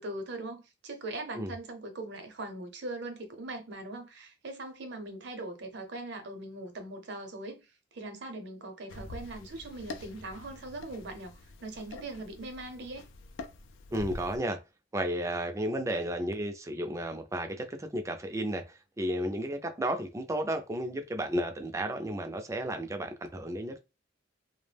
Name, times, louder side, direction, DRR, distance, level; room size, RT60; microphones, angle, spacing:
voice 1, 0.0-7.7 7.9-11.3 11.6-13.0, right 2 dB, 65° right, 0.6 m, -40 dB
sound 1, 8.9-14.4, left 2 dB, 80° left, 0.4 m, -45 dB
voice 2, 13.9-14.6 14.9-23.8, right 1 dB, 15° right, 0.4 m, -33 dB
2.2 x 2.0 x 3.3 m
head